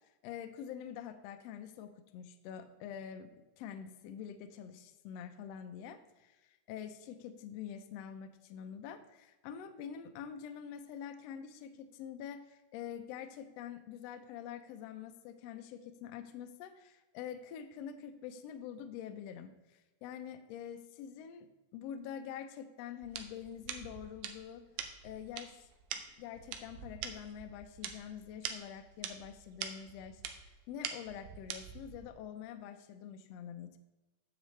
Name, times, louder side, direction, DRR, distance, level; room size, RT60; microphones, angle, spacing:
voice 1, 0.2-3.3 3.6-24.6 25.0-25.7 26.2-33.8, left 8 dB, 75° left, 8 dB, 1.6 m, -46 dB
sound 1, 23.0-32.1, right 8 dB, 85° right, 2.1 m, -44 dB
8.9 x 7.3 x 3.1 m, 1.1 s
omnidirectional pair, 3.3 m